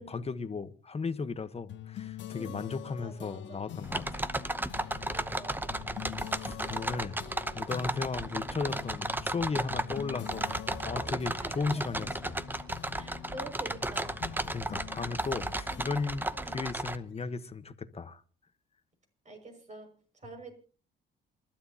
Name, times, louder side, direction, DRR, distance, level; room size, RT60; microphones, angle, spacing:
voice 1, 0.0-4.3 6.0-7.2 7.5-10.6 10.8-12.4 12.8-12.9 14.5-18.2, left 4 dB, 30° left, 1.2 m, -36 dB
sound 1, 1.7-17.6, left 11 dB, 70° left, 0.9 m, -45 dB
voice 2, 2.3-3.6 5.1-5.9 11.4-12.0 12.9-14.2 15.7-16.0 16.3-16.6 19.2-20.5, right 2 dB, 35° right, 6.2 m, -47 dB
sound 2, 3.8-17.0, right 2 dB, 10° right, 0.8 m, -34 dB
28.0 x 12.0 x 2.9 m
cardioid pair, 90°, 20 cm